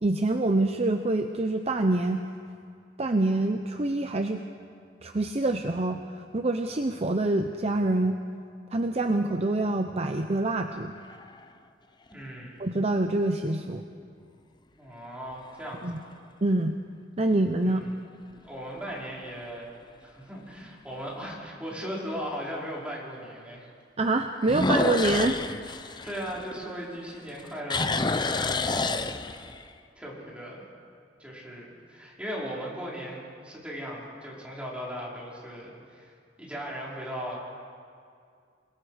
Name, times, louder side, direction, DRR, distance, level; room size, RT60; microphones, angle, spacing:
voice 1, 0.0-2.2 3.0-4.4 5.0-8.2 8.7-10.9 12.6-13.8 15.8-16.0 16.4-16.7 17.2-17.9 24.0-25.4, right 2 dB, 35° right, 6 dB, 0.8 m, -26 dB
sound 1, 10.8-11.4 12.1-12.2 17.4-17.9 18.4-18.5 19.0-19.1 19.4-19.5 21.0-21.1 24.4-27.0 27.3-29.7, left 3 dB, 25° left, 0.8 m, -29 dB
voice 2, 12.1-12.7 14.8-16.2 17.6-17.9 18.4-19.7 20.0-23.7 26.0-29.1 30.0-30.7 31.2-37.4, equal, 5° right, -5 dB, 5.4 m, -38 dB
28.5 x 21.5 x 5.2 m, 2.3 s
head